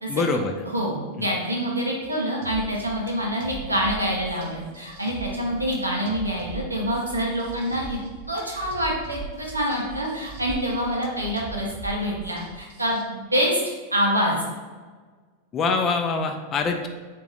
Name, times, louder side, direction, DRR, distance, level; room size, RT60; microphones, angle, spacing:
voice 1, 0.1-0.5 1.2-1.3 15.5-16.9, left 4 dB, 25° left, 5 dB, 0.4 m, -24 dB
voice 2, 0.7-8.0 8.3-13.6 13.9-14.3, equal, 85° right, -2 dB, 0.8 m, -26 dB
sound 1, 2.4-13.0, right 5 dB, 50° right, 0.5 m, -41 dB
sound 2, 5.6-5.8 6.3-6.4 6.9-7.9 8.4-9.6 9.9-10.9 11.2-11.4, right 8 dB, 20° right, 0.8 m, -43 dB
3.5 x 2.5 x 3.4 m, 1.5 s
figure-of-eight pair, 90°, 0 cm